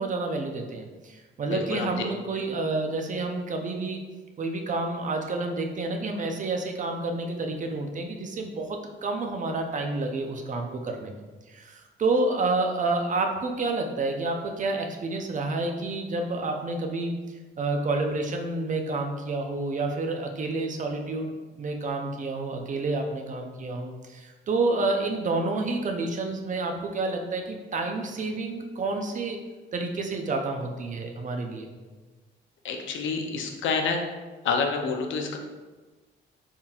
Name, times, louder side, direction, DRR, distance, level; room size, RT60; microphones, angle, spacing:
voice 1, 0.0-4.0 4.4-11.2 11.5-21.3 21.6-29.4 29.7-31.7, right 3 dB, 40° right, 3 dB, 0.6 m, -29 dB
voice 2, 1.5-1.9 32.6-34.0 34.4-35.4, left 5 dB, 75° left, 3 dB, 0.6 m, -28 dB
4.2 x 3.6 x 2.3 m, 1.3 s
cardioid pair, 90°, 20 cm